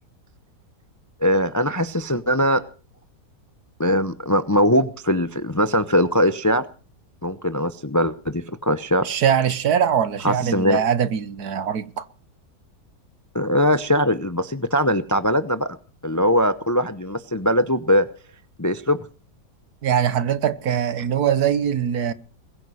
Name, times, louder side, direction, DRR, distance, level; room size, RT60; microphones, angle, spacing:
voice 1, 1.2-2.6 3.8-6.6 7.2-9.1 10.2-10.8 13.3-15.8 16.0-18.1 18.6-19.0, equal, 20° left, 0.5 m, -21 dB
voice 2, 9.0-12.1 19.8-22.1, right 8 dB, 75° right, 1.6 m, -22 dB
21.5 x 9.4 x 6.3 m
omnidirectional pair, 1.7 m